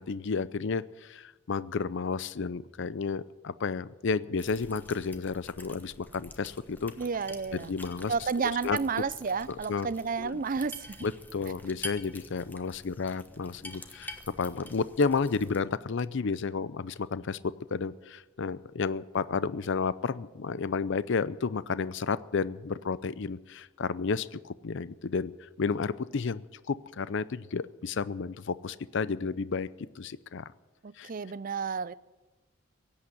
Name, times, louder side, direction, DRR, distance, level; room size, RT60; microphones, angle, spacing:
voice 1, 0.0-6.9 7.5-8.1 8.6-8.8 9.5-9.9 10.2-10.4 11.0-29.7 30.0-30.4 31.0-31.1, left 5 dB, 60° left, 0.5 m, -32 dB
sound 1, 4.4-15.6, left 2 dB, 10° left, 1.2 m, -47 dB
voice 2, 7.0-7.7 8.1-11.1 30.8-31.9, right 5 dB, 40° right, 0.5 m, -31 dB
17.0 x 8.7 x 9.8 m
head